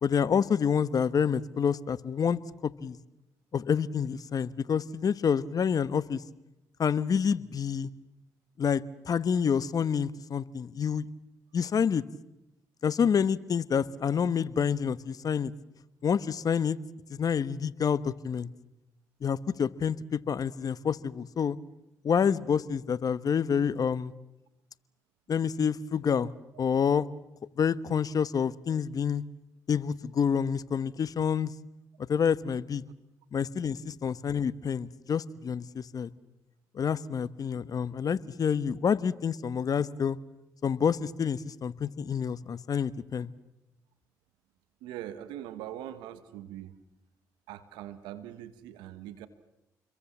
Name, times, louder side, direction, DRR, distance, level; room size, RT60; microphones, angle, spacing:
voice 1, 0.0-3.0 3.5-6.2 6.8-7.9 8.6-11.1 11.5-12.0 12.8-15.5 16.0-16.8 17.1-18.5 19.2-21.6 22.0-24.1 25.3-26.3 26.6-27.1 27.6-29.2 29.7-31.5 32.0-32.8 33.3-36.1 36.7-40.2 40.6-43.3, left 7 dB, 55° left, 17 dB, 1.2 m, -28 dB
voice 2, 44.8-46.8 47.5-49.3, right 12 dB, 85° right, 13 dB, 1.4 m, -42 dB
29.0 x 22.5 x 7.4 m, 0.90 s
supercardioid pair, 55°, 8 cm